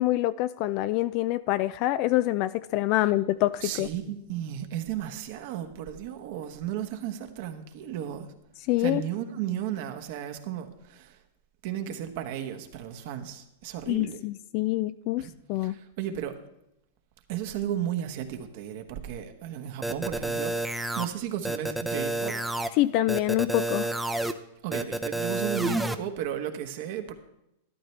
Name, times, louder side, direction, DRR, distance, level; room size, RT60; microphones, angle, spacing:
voice 1, 0.0-3.9 8.7-9.0 13.9-15.8 22.8-23.9, left 16 dB, 50° left, 15 dB, 0.3 m, -26 dB
voice 2, 3.6-8.3 8.8-11.2 11.6-14.2 15.2-15.3 15.6-16.4 17.3-22.4 24.6-27.1, right 10 dB, 60° right, 6 dB, 1.2 m, -34 dB
sound 1, 19.8-21.1 21.4-22.7 23.1-24.3 24.7-25.9, right 2 dB, 5° right, 0.7 m, -29 dB
12.5 x 10.5 x 3.3 m, 0.86 s
hypercardioid pair, 130°, 0 cm